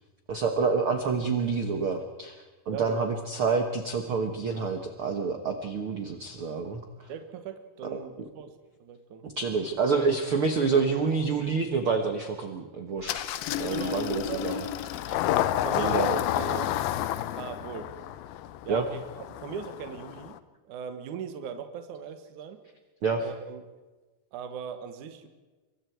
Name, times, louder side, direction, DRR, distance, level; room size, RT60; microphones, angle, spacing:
voice 1, 0.3-2.4 2.7-6.8 9.2-13.3 13.6-14.6 15.0-15.1 15.8-16.2 18.7-18.9 23.0-23.2, right 4 dB, 85° right, 5 dB, 1.2 m, -28 dB
voice 2, 2.7-3.0 7.1-8.5 8.8-9.2 13.7-14.5 15.6-16.8 17.3-17.9 18.6-20.4 20.6-22.6 23.2-23.6 24.3-25.3, right 7 dB, 60° right, 8 dB, 2.4 m, -39 dB
Engine starting, 13.1-20.4, left 12 dB, 75° left, 2.5 m, -30 dB
27.0 x 24.0 x 4.6 m, 1.2 s
omnidirectional pair, 4.7 m